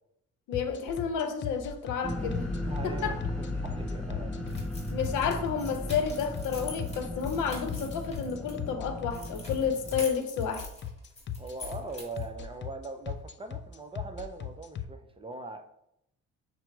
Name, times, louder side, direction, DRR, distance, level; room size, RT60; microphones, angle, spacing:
voice 1, 0.5-2.5 2.8-3.2 4.9-10.7, left 6 dB, 85° left, 0.7 m, -31 dB
sound 1, 0.5-14.8, left 9 dB, 40° left, 0.4 m, -37 dB
sound 2, 2.0-10.0, left 1 dB, 5° left, 0.9 m, -36 dB
voice 2, 2.7-4.4 11.4-15.7, right 2 dB, 20° right, 0.5 m, -41 dB
sound 3, 4.5-8.5 9.1-12.3, left 2 dB, 20° left, 1.7 m, -46 dB
5.7 x 2.0 x 4.5 m
cardioid pair, 90°, 30 cm